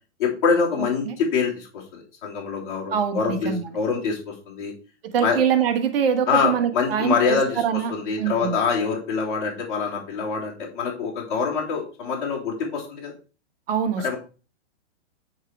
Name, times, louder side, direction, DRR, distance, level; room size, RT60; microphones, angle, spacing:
voice 1, 0.2-4.7 5.2-5.4 6.3-13.1 14.0-14.2, left 5 dB, 45° left, -5 dB, 3.4 m, -25 dB
voice 2, 2.9-3.6 5.0-7.9 8.2-8.6 13.7-14.1, right 8 dB, 55° right, 8 dB, 1.3 m, -24 dB
8.9 x 4.7 x 4.7 m, 0.35 s
hypercardioid pair, 175°, 35 cm